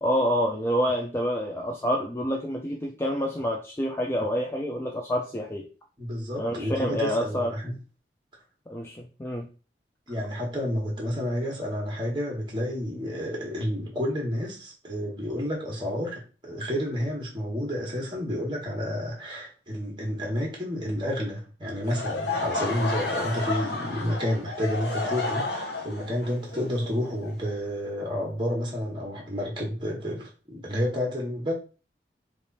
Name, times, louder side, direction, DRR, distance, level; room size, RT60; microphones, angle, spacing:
voice 1, 0.0-5.7 6.4-7.5 8.7-9.5, equal, 15° left, 0.3 m, -27 dB
voice 2, 6.0-7.7 10.1-31.5, equal, 25° right, 1.2 m, -30 dB
Laughter / Crowd, 21.8-27.8, left 3 dB, 80° left, 0.8 m, -31 dB
3.3 x 2.5 x 4.0 m
head